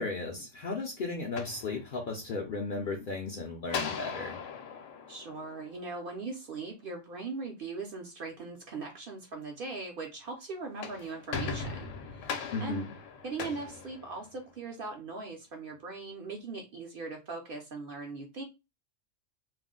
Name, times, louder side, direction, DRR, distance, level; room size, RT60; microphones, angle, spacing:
voice 1, 0.0-4.3 12.5-12.9, left 3 dB, 60° left, 0.6 m, -35 dB
sound 1, 1.2-2.4 3.7-6.2 10.6-14.6, left 5 dB, 75° left, 0.9 m, -39 dB
voice 2, 5.1-12.9 13.2-18.4, right 3 dB, 60° right, 0.6 m, -40 dB
2.4 x 2.0 x 3.6 m
omnidirectional pair, 1.3 m